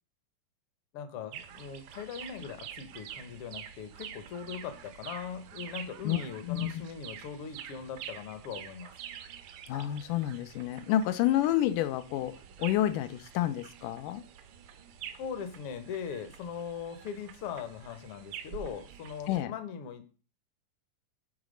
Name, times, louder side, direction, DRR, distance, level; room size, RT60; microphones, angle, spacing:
voice 1, 0.9-8.9 15.2-20.1, left 7 dB, 65° left, 8 dB, 1.4 m, -40 dB
sound 1, 1.3-19.4, right 9 dB, 75° right, 2.3 m, -47 dB
voice 2, 6.0-6.7 9.7-14.2 19.3-19.5, left 13 dB, 90° left, 11 dB, 2.2 m, -29 dB
9.6 x 4.1 x 5.2 m, 0.36 s
omnidirectional pair, 3.8 m